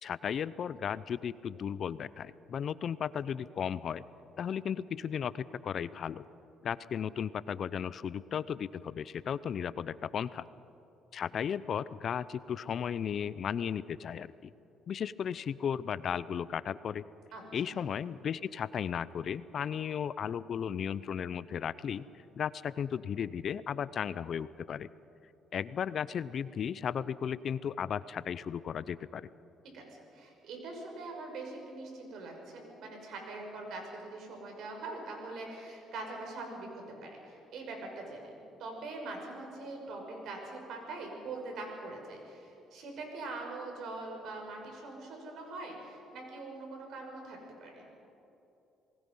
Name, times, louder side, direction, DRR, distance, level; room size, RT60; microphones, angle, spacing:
voice 1, 0.0-4.0 4.4-6.2 6.6-10.5 11.1-14.5 14.9-17.0 17.5-22.0 22.4-24.9 25.5-29.3, left 8 dB, 50° left, 17 dB, 0.6 m, -35 dB
voice 2, 17.3-17.7 29.7-47.9, right 2 dB, 70° right, 1 dB, 6.0 m, -43 dB
28.0 x 20.0 x 5.5 m, 2.9 s
cardioid pair, 100°, 0 cm